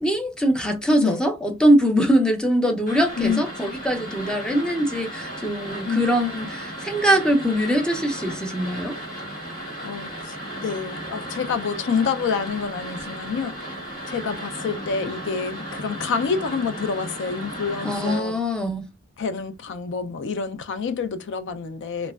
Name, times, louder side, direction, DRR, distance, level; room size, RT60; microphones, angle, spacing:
voice 1, 0.0-8.9 17.8-18.9, equal, 5° left, 0.5 m, -22 dB
sound 1, 2.9-18.2, right 1 dB, 40° left, 1.8 m, -35 dB
voice 2, 9.8-10.3 10.6-13.6 14.1-18.4 19.2-22.1, left 5 dB, 60° left, 0.4 m, -27 dB
3.2 x 2.1 x 2.2 m
head